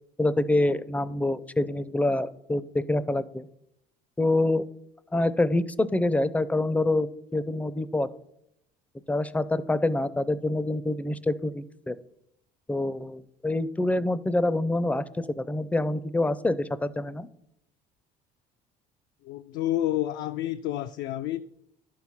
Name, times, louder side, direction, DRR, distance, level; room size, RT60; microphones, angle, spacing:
voice 1, 0.2-3.5 4.2-4.6 5.1-8.1 9.1-11.9 12.7-17.3, left 2 dB, 5° left, 0.4 m, -26 dB
voice 2, 19.2-21.4, left 13 dB, 70° left, 0.4 m, -29 dB
11.5 x 4.7 x 5.6 m
supercardioid pair, 95°, 19 cm